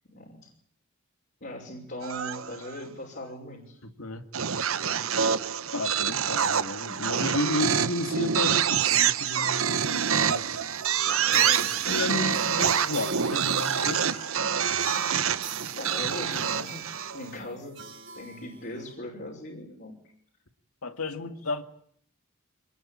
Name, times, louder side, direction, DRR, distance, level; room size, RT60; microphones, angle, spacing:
voice 1, 0.1-0.5 1.4-3.8 4.8-5.3 11.0-12.4 15.8-17.8 18.1-20.1, left 1 dB, 45° left, 5.6 m, -40 dB
sound 1, 2.0-2.8 4.3-17.3, right 8 dB, 75° right, 1.1 m, -26 dB
voice 2, 3.8-4.2 5.7-10.5 11.3-14.1 20.8-21.6, left 2 dB, 85° left, 2.3 m, -33 dB
sound 2, 9.4-18.9, right 6 dB, 55° right, 3.7 m, -40 dB
26.0 x 20.5 x 9.0 m
head